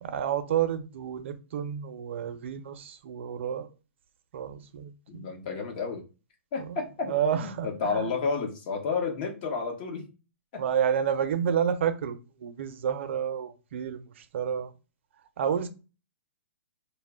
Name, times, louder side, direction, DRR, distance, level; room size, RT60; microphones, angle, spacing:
voice 1, 0.0-3.7 4.3-5.3 6.7-6.8 7.1-8.0 10.6-14.7 15.4-15.7, right 8 dB, 60° right, 0.5 m, -30 dB
voice 2, 5.1-6.0 6.5-10.1 10.5-10.6, left 5 dB, 40° left, 0.8 m, -31 dB
2.1 x 2.0 x 3.5 m
hypercardioid pair, 150°, 7 cm